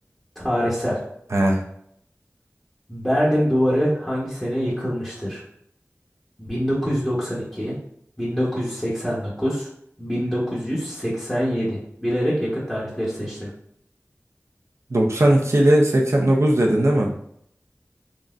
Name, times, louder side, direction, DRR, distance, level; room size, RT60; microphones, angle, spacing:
voice 1, 0.4-1.0 2.9-5.4 6.4-7.7 8.2-9.7 10.0-13.5, equal, 10° left, -8 dB, 1.0 m, -24 dB
voice 2, 1.3-1.6 14.9-17.1, right 1 dB, 70° right, -1 dB, 0.5 m, -18 dB
3.8 x 2.1 x 2.4 m, 0.71 s
wide cardioid pair, 40°, 5 cm